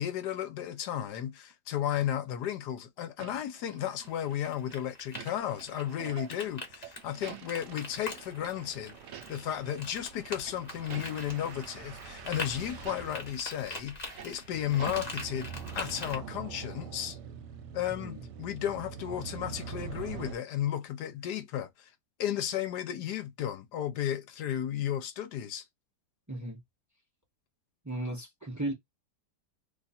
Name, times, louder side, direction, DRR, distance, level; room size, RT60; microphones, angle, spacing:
voice 1, 0.0-9.0 9.3-17.2 17.7-21.9 22.2-25.6, left 10 dB, 75° left, 1.2 m, -34 dB
sound 1, 3.2-4.4 4.7-8.1 8.4-8.5 8.9-9.6 9.9-11.6 12.1-12.2 12.7-15.7 16.0-16.1, right 10 dB, 65° right, 0.8 m, -48 dB
sound 2, 3.7-3.8 4.1-4.2 4.5-4.7 5.0-5.2 6.5-20.4, right 7 dB, 80° right, 1.2 m, -45 dB
sound 3, 4.0-16.2, left 2 dB, 25° left, 1.1 m, -44 dB
voice 2, 26.3-26.6 27.8-28.7, right 1 dB, 30° right, 0.3 m, -36 dB
2.9 x 2.4 x 4.1 m
omnidirectional pair, 1.8 m